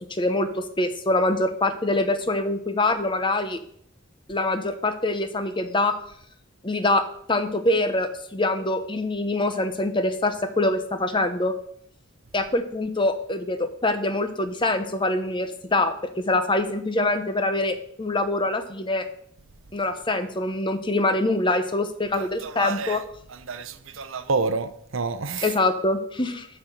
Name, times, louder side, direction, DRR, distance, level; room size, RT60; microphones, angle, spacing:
voice 1, 0.1-3.6 4.3-5.9 6.6-7.0 7.3-11.5 12.3-19.1 19.7-23.0 25.4-26.5, left 2 dB, 25° left, 8 dB, 0.8 m, -24 dB
voice 2, 22.2-23.0 23.3-25.5, right 4 dB, 70° right, 11 dB, 0.7 m, -29 dB
13.0 x 4.4 x 6.6 m, 0.67 s
head